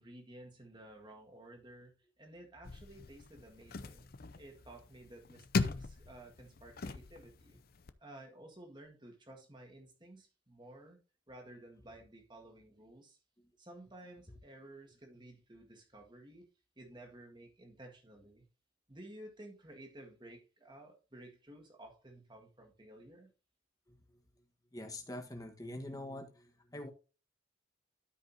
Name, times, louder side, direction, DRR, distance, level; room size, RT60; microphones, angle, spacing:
voice 1, 0.0-4.1 4.4-7.6 8.0-11.0 11.3-13.2 13.6-16.5 16.8-18.5 18.9-23.3, right 1 dB, 25° right, 1.8 m, -54 dB
sound 1, 2.6-7.9, left 3 dB, 50° left, 0.5 m, -39 dB
voice 2, 23.9-26.9, left 1 dB, 20° left, 1.3 m, -46 dB
13.0 x 5.3 x 2.8 m
head